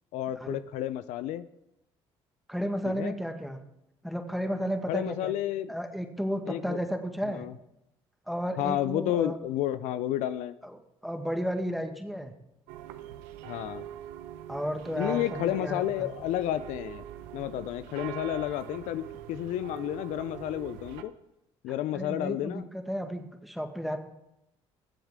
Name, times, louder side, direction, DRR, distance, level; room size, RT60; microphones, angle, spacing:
voice 1, 0.1-1.5 2.8-3.2 4.9-5.7 6.5-6.8 7.3-7.5 8.6-10.5 13.5-13.8 15.0-17.0 17.3-21.1 21.6-22.6, left 12 dB, 75° left, 13 dB, 0.5 m, -31 dB
voice 2, 2.5-3.6 4.0-5.3 5.7-7.5 8.3-9.4 10.6-10.7 11.0-12.3 14.5-16.1 21.9-24.0, equal, ahead, 5 dB, 1.7 m, -33 dB
sound 1, 12.7-21.0, right 12 dB, 90° right, 0.7 m, -43 dB
22.0 x 7.4 x 3.7 m, 0.86 s
supercardioid pair, 70°, 12 cm